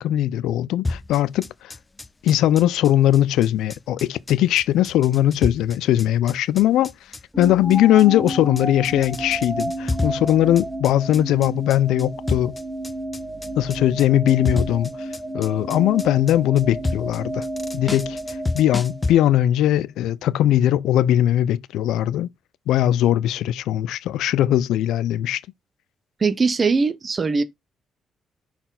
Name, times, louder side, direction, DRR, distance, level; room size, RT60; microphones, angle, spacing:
voice 1, 0.0-1.7 2.2-6.9 7.4-12.6 13.6-14.9 15.3-17.5 17.7-18.2 18.5-22.3 22.7-25.4, left 12 dB, 85° left, 0.4 m, -20 dB
sound 1, 0.8-19.1, left 2 dB, 20° left, 0.5 m, -30 dB
sound 2, 7.3-19.4, right 1 dB, 5° right, 1.9 m, -32 dB
voice 2, 26.2-27.4, right 4 dB, 35° right, 0.7 m, -20 dB
5.9 x 4.2 x 3.9 m
cardioid pair, 90°, 0 cm